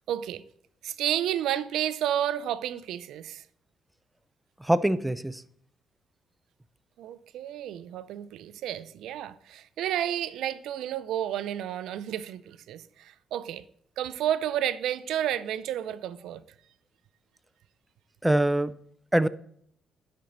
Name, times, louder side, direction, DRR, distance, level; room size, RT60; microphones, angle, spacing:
voice 1, 0.1-0.4 0.8-3.4 7.0-13.6 14.0-16.4, right 11 dB, 85° right, 0.4 m, -31 dB
voice 2, 4.6-5.4 18.2-18.7 19.1-19.3, right 1 dB, 5° right, 0.4 m, -23 dB
10.5 x 4.4 x 3.9 m
cardioid pair, 90°, 0 cm